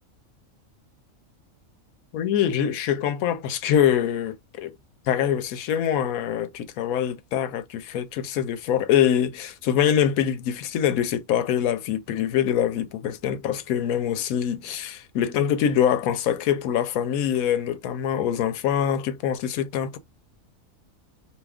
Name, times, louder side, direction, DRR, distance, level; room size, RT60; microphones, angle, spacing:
voice 1, 2.1-4.7 5.1-20.0, left 9 dB, 85° left, 1.0 m, -24 dB
2.6 x 2.4 x 3.3 m
omnidirectional pair, 1.4 m